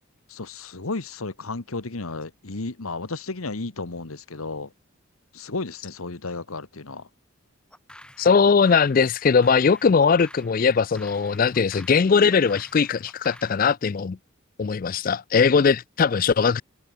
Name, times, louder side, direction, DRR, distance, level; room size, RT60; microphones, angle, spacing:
voice 1, 0.3-4.7 5.3-7.0, left 3 dB, 90° left, 1.5 m, -33 dB
sound 1, 7.7-13.6, left 1 dB, 5° left, 2.0 m, -49 dB
voice 2, 8.2-14.2 14.6-16.6, left 5 dB, 40° left, 0.4 m, -20 dB
head